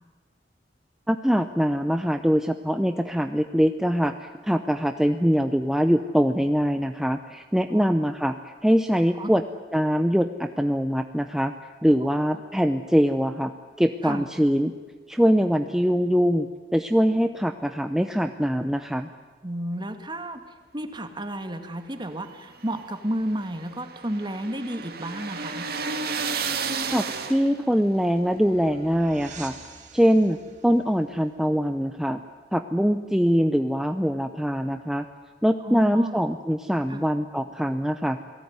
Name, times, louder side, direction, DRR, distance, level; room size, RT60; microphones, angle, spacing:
voice 1, 1.1-9.4 9.7-11.5 11.8-13.5 13.8-14.7 15.1-16.5 16.7-19.1 26.9-27.0 27.3-29.5 29.9-30.4 30.6-32.2 32.5-35.0 35.4-38.2, equal, 5° right, 7 dB, 0.7 m, -23 dB
voice 2, 19.4-20.4 20.7-25.7 35.6-36.2 36.9-37.0, right 1 dB, 25° right, 7 dB, 2.0 m, -32 dB
sound 1, 22.3-27.8, right 5 dB, 60° right, 2.4 m, -32 dB
sound 2, 27.6-32.7, right 5 dB, 45° right, 4.0 m, -49 dB
29.0 x 18.0 x 9.6 m, 1.4 s
head